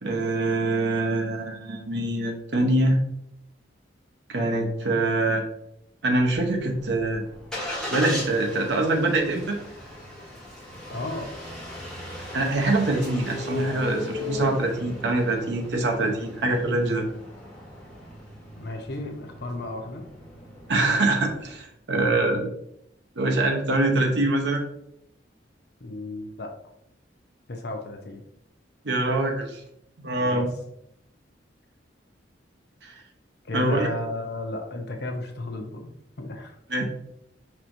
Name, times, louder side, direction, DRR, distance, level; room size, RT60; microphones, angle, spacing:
voice 1, 0.0-3.0 4.3-5.5 6.0-7.2 7.9-9.6 12.3-17.0 20.7-22.5 23.2-24.6 28.8-29.6 30.0-30.5 32.8-32.9 33.5-33.9 36.7-36.8, right 2 dB, 70° right, 2 dB, 0.8 m, -24 dB
Engine starting, 6.3-21.6, left 1 dB, 5° left, 1.1 m, -37 dB
voice 2, 10.9-11.3 18.6-20.1 25.8-26.5 27.5-28.2 30.2-30.5 33.4-36.5, left 2 dB, 60° left, 4 dB, 0.6 m, -34 dB
5.5 x 3.0 x 2.6 m, 0.75 s
head